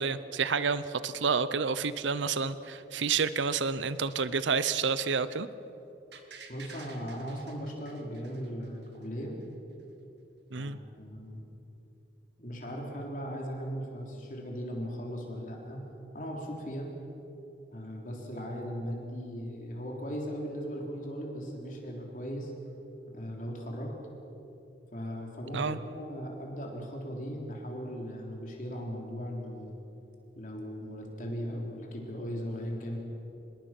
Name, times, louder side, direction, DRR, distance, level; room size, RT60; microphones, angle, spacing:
voice 1, 0.0-5.5 10.5-10.8 25.5-25.8, right 5 dB, 80° right, 14 dB, 0.7 m, -29 dB
sound 1, 6.1-9.0 9.4-9.5, right 5 dB, 65° right, 2.0 m, -51 dB
voice 2, 6.5-9.4 10.5-11.4 12.4-15.8 16.1-16.9 17.7-22.5 23.1-23.9 24.9-29.8 30.4-33.0, equal, 45° left, 0 dB, 3.8 m, -38 dB
26.0 x 21.0 x 6.1 m, 2.9 s
head